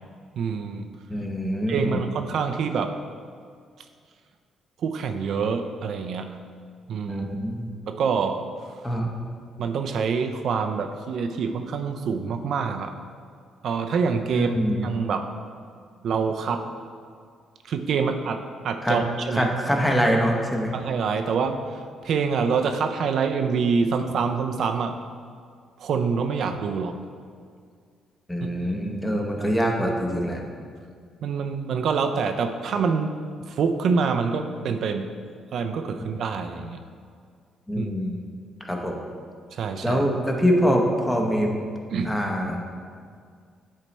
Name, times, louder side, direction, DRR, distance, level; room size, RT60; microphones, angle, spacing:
voice 1, 0.4-0.9 1.7-3.0 4.8-6.3 6.9-7.3 7.9-8.5 9.6-12.9 13.6-14.5 14.8-15.3 16.0-16.7 17.6-19.5 20.7-21.6 22.0-25.0 25.8-27.0 31.2-33.2 33.5-35.1 35.5-36.8 37.7-37.9 39.5-40.0 41.9-42.2, right 5 dB, 65° right, 6 dB, 0.3 m, -26 dB
voice 2, 1.1-2.0 7.1-7.7 8.8-9.2 14.3-14.9 18.8-19.0 19.3-20.7 28.3-30.4 37.7-38.2 38.6-39.0 39.8-41.5 42.0-42.6, equal, 10° left, 1 dB, 0.9 m, -24 dB
8.3 x 3.2 x 4.1 m, 2.1 s
cardioid pair, 90°, 0 cm